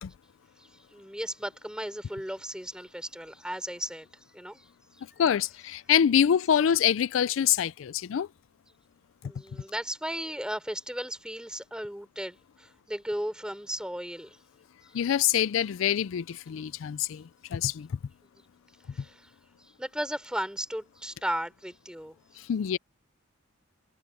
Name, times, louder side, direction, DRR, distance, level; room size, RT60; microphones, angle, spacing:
voice 1, 0.6-4.1 4.3-4.7 9.2-14.4 18.9-19.3 19.6-22.5, right 1 dB, 5° right, 3.5 m, -36 dB
voice 2, 5.2-8.3 14.9-18.0 22.4-22.8, left 9 dB, 80° left, 0.4 m, -25 dB
head